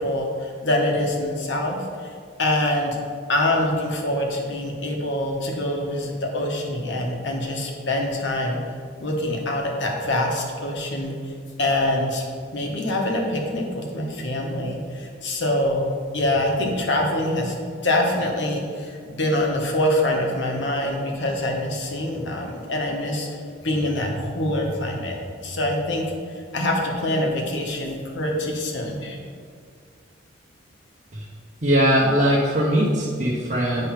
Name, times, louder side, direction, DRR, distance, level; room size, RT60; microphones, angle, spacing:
voice 1, 0.0-1.8 2.4-3.0 3.3-8.6 9.0-11.1 11.6-12.3 12.5-15.9 16.1-17.5 17.8-23.3 23.6-26.1 26.5-29.2, left 1 dB, 65° left, 0 dB, 1.2 m, -25 dB
voice 2, 31.6-33.9, equal, 40° right, -6 dB, 0.9 m, -20 dB
8.8 x 3.4 x 5.9 m, 2.1 s
head